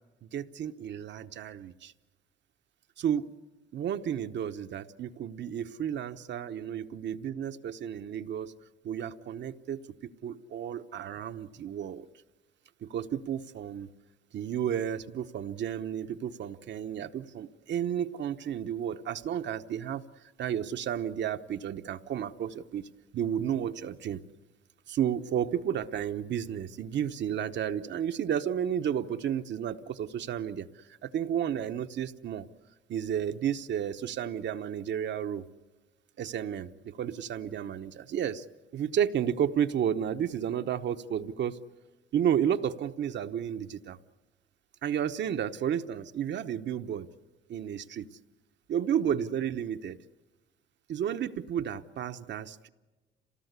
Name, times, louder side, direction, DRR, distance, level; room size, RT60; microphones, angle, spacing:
voice 1, 0.2-1.9 3.0-3.2 3.7-8.5 8.8-12.1 12.8-13.9 14.3-20.0 20.4-22.9 23.1-24.2 24.9-30.7 31.0-32.5 32.9-35.4 36.2-38.4 38.7-41.6 42.1-44.0 44.8-47.1 47.5-48.1 48.7-50.0 50.9-52.7, right 9 dB, 65° right, 9 dB, 1.0 m, -32 dB
27.5 x 18.0 x 8.2 m, 1.2 s
cardioid pair, 90°, 20 cm